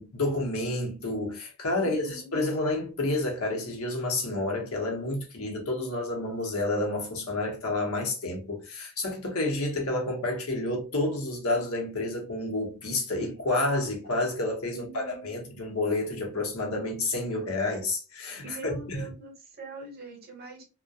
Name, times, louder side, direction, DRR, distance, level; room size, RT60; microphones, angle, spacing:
voice 1, 0.0-2.0 2.3-19.1, left 2 dB, 80° left, 0.8 m, -29 dB
voice 2, 1.8-2.3 14.7-15.4 18.4-20.6, right 2 dB, 45° right, 0.8 m, -43 dB
2.3 x 2.1 x 2.6 m
head